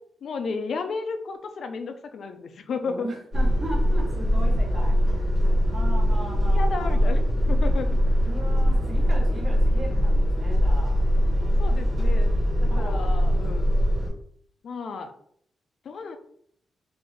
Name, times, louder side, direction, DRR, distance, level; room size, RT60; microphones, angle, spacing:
voice 1, 0.2-3.1 6.5-8.0 11.6-12.3 12.6-13.7 14.6-15.1 15.8-16.2, left 4 dB, 55° left, 7 dB, 0.4 m, -33 dB
voice 2, 2.8-7.0 8.2-11.0 12.7-13.3, right 1 dB, 25° right, -3 dB, 1.4 m, -38 dB
sound 1, 3.3-14.1, equal, 50° right, 1.4 m, -22 dB
3.8 x 2.6 x 3.3 m, 0.64 s
wide cardioid pair, 145°, 0 cm